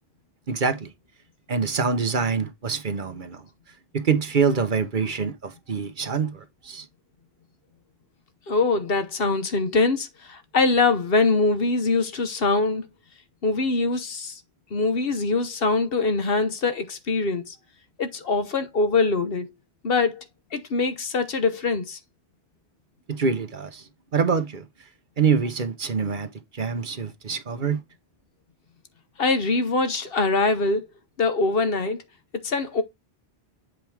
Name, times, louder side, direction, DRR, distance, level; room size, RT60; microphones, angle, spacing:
voice 1, 0.5-0.9 1.5-3.5 3.9-6.9 23.1-24.7 25.2-27.8, right 5 dB, 50° right, 1.0 m, -25 dB
voice 2, 8.5-12.9 13.4-14.4 14.7-17.6 18.0-19.5 19.8-20.2 20.5-22.0 29.2-30.9 31.2-32.0 32.3-32.8, left 3 dB, 65° left, 1.2 m, -23 dB
7.8 x 4.5 x 3.4 m
omnidirectional pair, 1.1 m